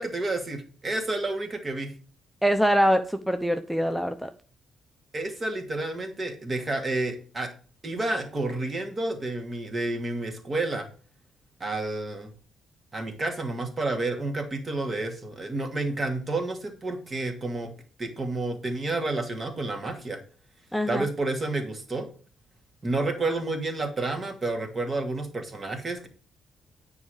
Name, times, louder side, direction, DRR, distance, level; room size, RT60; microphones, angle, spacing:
voice 1, 0.0-1.9 5.1-7.5 7.8-10.9 11.6-12.3 12.9-17.7 18.0-20.2 20.9-22.1 22.8-26.1, right 2 dB, 35° right, 5 dB, 2.4 m, -30 dB
voice 2, 2.4-4.3 20.7-21.1, equal, ahead, 9 dB, 0.8 m, -24 dB
9.5 x 4.9 x 5.0 m, 0.39 s
hypercardioid pair, 45°, 0 cm